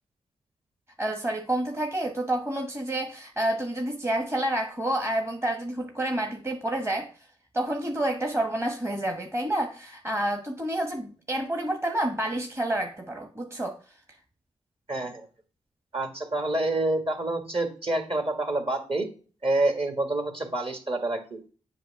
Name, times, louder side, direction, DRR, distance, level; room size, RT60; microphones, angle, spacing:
voice 1, 1.0-7.1 7.5-13.8, right 1 dB, 20° right, 3 dB, 1.1 m, -29 dB
voice 2, 14.9-15.3 15.9-19.1 19.4-21.4, right 2 dB, 45° right, 5 dB, 1.6 m, -27 dB
7.5 x 2.7 x 5.6 m, 0.39 s
cardioid pair, 50°, 13 cm